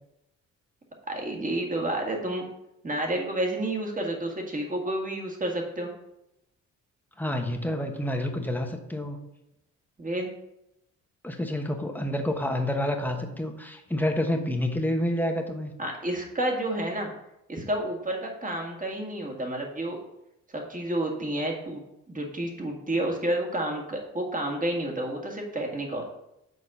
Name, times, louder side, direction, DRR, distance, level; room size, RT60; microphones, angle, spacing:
voice 1, 1.1-2.4 2.8-5.9 10.0-10.3 15.8-17.1 17.5-20.0 20.5-21.8 22.1-26.0, right 1 dB, 25° right, 1 dB, 1.9 m, -30 dB
voice 2, 7.2-9.2 11.2-15.7, left 1 dB, 5° left, 3 dB, 1.1 m, -28 dB
6.4 x 4.3 x 5.3 m, 0.85 s
cardioid pair, 90°, 30 cm